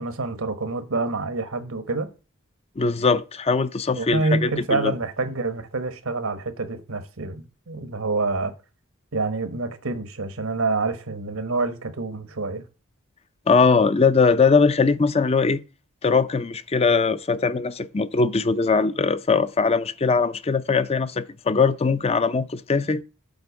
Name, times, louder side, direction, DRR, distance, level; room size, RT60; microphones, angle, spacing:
voice 1, 0.0-2.1 3.9-8.5 9.1-12.6, right 3 dB, 80° right, 1.3 m, -27 dB
voice 2, 2.8-4.9 13.5-15.6 16.0-23.0, left 4 dB, 30° left, 0.5 m, -21 dB
7.9 x 4.4 x 7.0 m
head